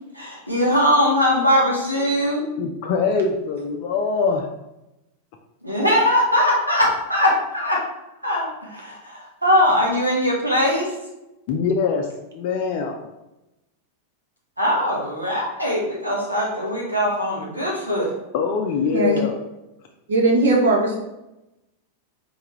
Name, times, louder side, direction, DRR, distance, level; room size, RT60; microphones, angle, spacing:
voice 1, 0.1-2.4 5.6-7.8 8.2-10.9 14.6-18.1, left 1 dB, 85° right, -2 dB, 1.0 m, -21 dB
voice 2, 2.6-4.5 11.5-12.1 12.3-13.0 18.3-19.3, left 5 dB, 45° left, 2 dB, 0.4 m, -23 dB
voice 3, 20.1-21.0, right 2 dB, 65° right, 0 dB, 0.9 m, -18 dB
3.8 x 3.4 x 3.0 m, 0.94 s
figure-of-eight pair, 90°, 0 cm